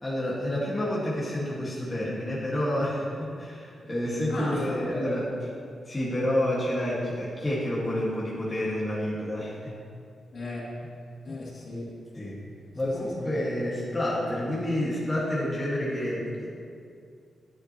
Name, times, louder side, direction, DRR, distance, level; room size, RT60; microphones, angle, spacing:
voice 1, 0.0-5.3 5.9-9.8 11.3-11.4 12.1-12.4 12.7-16.5, left 1 dB, 15° left, -7 dB, 1.8 m, -29 dB
voice 2, 4.3-5.2 10.3-10.8 11.2-12.0 12.8-13.4, left 2 dB, 55° left, -5 dB, 2.6 m, -36 dB
11.5 x 10.0 x 3.0 m, 2.4 s
wide cardioid pair, 130°, 0 cm